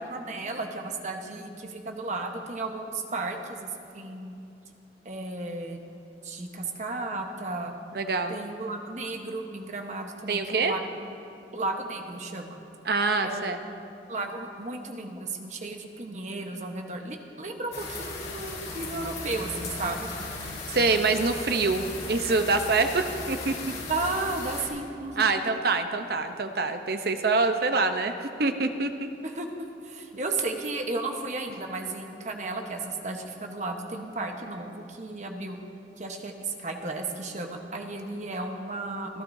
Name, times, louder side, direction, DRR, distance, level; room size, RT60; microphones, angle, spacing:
voice 1, 0.0-4.3 5.0-5.8 6.2-7.7 8.3-10.8 11.5-12.6 13.2-13.5 14.1-20.1 23.9-25.3 29.2-35.6 36.0-39.2, right 3 dB, 40° right, 3 dB, 1.1 m, -34 dB
voice 2, 7.9-8.3 10.3-10.8 12.9-13.6 20.7-23.6 25.2-29.1, right 3 dB, 60° right, 7 dB, 0.8 m, -25 dB
sound 1, 17.7-24.7, left 3 dB, 60° left, 3.4 m, -37 dB
28.0 x 12.0 x 2.7 m, 2.7 s
head